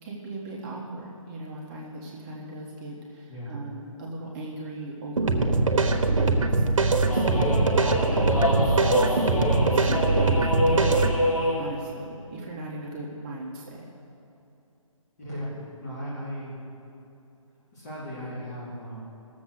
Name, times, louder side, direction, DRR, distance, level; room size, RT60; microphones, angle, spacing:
voice 1, 0.0-5.5 5.8-6.6 7.1-7.7 8.1-9.3 9.7-13.8, right 2 dB, 15° right, -4 dB, 1.4 m, -38 dB
voice 2, 3.3-3.6 15.2-15.5 15.8-16.6 17.7-19.0, equal, 30° left, -8 dB, 3.6 m, -36 dB
sound 1, 5.2-11.2, right 3 dB, 70° right, 1.3 m, -22 dB
sound 2, 7.1-11.7, left 1 dB, 85° left, 2.6 m, -26 dB
18.5 x 7.4 x 6.5 m, 2.7 s
hypercardioid pair, 160°, 18 cm